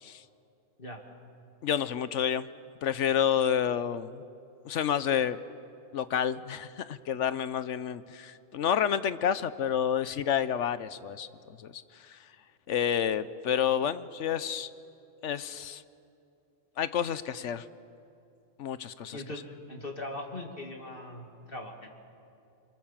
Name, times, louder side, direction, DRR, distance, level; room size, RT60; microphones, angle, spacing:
voice 1, 1.6-2.5 2.8-4.2 4.6-5.4 5.9-11.3 11.6-11.8 12.1-12.2 12.7-14.7 15.2-15.8 16.8-17.6 18.6-19.2, left 8 dB, 70° left, 14 dB, 1.1 m, -29 dB
voice 2, 19.1-19.4 19.7-21.9, left 1 dB, 45° left, 2 dB, 2.8 m, -40 dB
27.5 x 24.5 x 7.3 m, 2.6 s
omnidirectional pair, 1.3 m